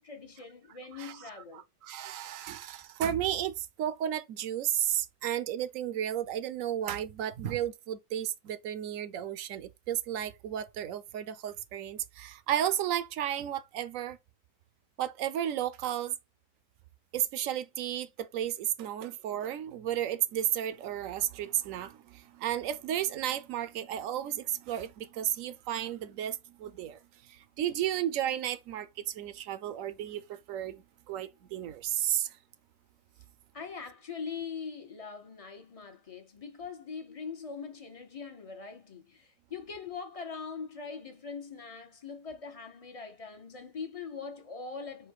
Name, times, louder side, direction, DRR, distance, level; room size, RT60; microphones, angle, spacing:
voice 1, 0.0-1.6 33.5-45.1, left 5 dB, 35° left, 0.5 m, -42 dB
voice 2, 1.5-14.2 15.0-16.1 17.1-32.4, right 11 dB, 70° right, 0.9 m, -33 dB
5.0 x 2.2 x 4.5 m
omnidirectional pair, 1.7 m